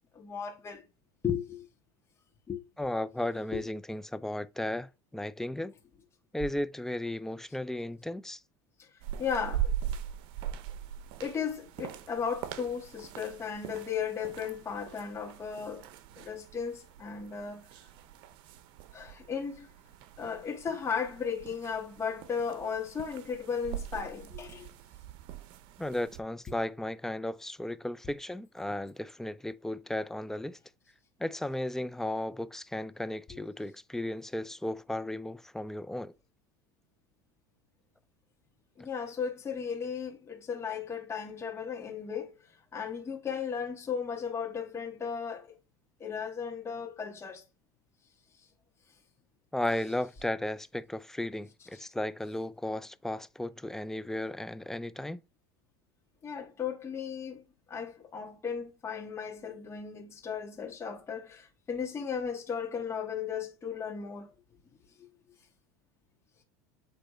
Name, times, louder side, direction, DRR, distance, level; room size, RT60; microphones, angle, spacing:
voice 1, 0.1-0.8 1.2-1.7 2.5-2.6 3.5-3.6 8.8-8.9 9.2-9.7 11.2-15.9 16.2-17.7 18.9-19.7 20.2-24.7 38.8-42.4 42.7-45.5 46.0-47.4 51.7-51.8 56.2-64.3, left 6 dB, 25° left, 1.6 m, -35 dB
voice 2, 2.8-5.7 6.3-8.4 25.8-30.6 31.2-36.1 49.5-55.2, left 1 dB, 5° left, 0.4 m, -35 dB
sound 1, 9.0-26.2, right 10 dB, 60° right, 0.8 m, -41 dB
8.0 x 3.4 x 4.3 m
supercardioid pair, 100°, 10 cm